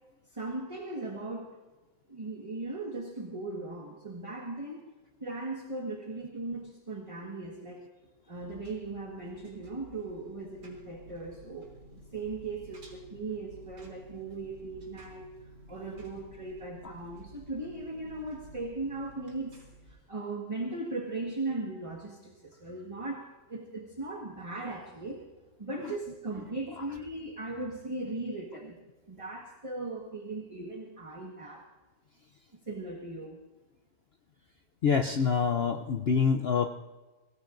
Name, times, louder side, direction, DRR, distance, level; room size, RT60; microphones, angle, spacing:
voice 1, 0.3-1.6 2.1-4.8 5.2-7.8 8.3-15.3 15.7-25.2 25.6-28.8 29.1-31.6 32.7-33.4, right 2 dB, 20° right, 0 dB, 1.4 m, -38 dB
Engine, 8.3-20.0, right 1 dB, 70° right, 3.9 m, -53 dB
voice 2, 34.8-36.7, left 6 dB, 80° left, 6 dB, 0.5 m, -26 dB
25.5 x 19.0 x 2.6 m, 1.2 s
omnidirectional pair, 1.9 m